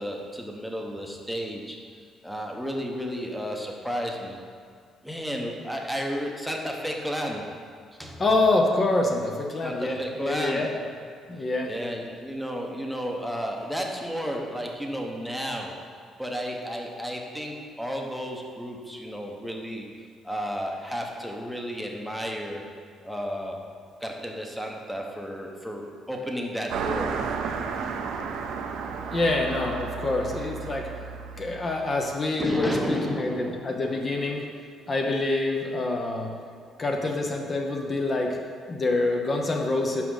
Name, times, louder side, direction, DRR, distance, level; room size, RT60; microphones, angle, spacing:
voice 1, 0.0-4.4 5.0-7.6 8.0-8.2 9.6-10.7 11.7-15.8 16.2-19.9 20.2-22.6 23.0-23.6 24.0-27.2 32.4-34.3, equal, ahead, 1 dB, 0.9 m, -32 dB
voice 2, 8.2-10.7 11.3-11.7 28.9-30.9 31.4-34.5 34.9-36.3 36.8-38.4 38.7-40.0, left 2 dB, 30° left, 2 dB, 0.7 m, -26 dB
Car passing by, 26.7-32.5, right 5 dB, 75° right, 0.6 m, -33 dB
5.8 x 5.0 x 6.4 m, 2.2 s
cardioid pair, 120°, 0 cm